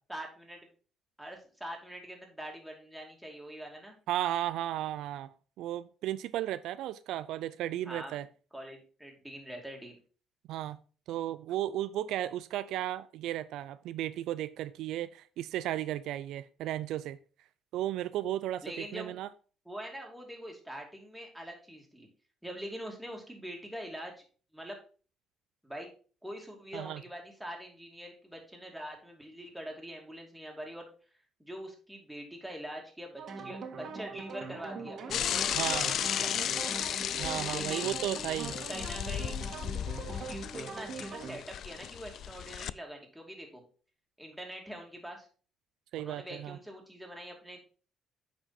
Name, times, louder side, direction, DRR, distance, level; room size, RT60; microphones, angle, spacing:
voice 1, 0.1-0.7 1.2-3.9 7.8-8.2 8.5-10.0 18.6-19.2 19.6-22.1 22.4-24.2 24.5-24.8 25.6-25.9 26.2-30.9 31.4-36.8 37.5-37.9 38.7-39.4 40.0-43.6 44.2-45.3 46.0-47.6, equal, 5° right, 1 dB, 2.6 m, -44 dB
voice 2, 4.1-5.3 5.6-8.3 10.5-10.8 11.1-17.2 17.7-19.3 26.7-27.0 35.6-35.9 37.2-38.5 45.9-46.6, right 13 dB, 75° right, 14 dB, 0.3 m, -34 dB
sound 1, 33.2-41.4, right 4 dB, 55° right, 1.8 m, -42 dB
Bicycle / Mechanisms, 35.1-42.7, left 10 dB, 60° left, 0.3 m, -34 dB
8.8 x 5.0 x 4.2 m, 0.38 s
cardioid pair, 95°, 0 cm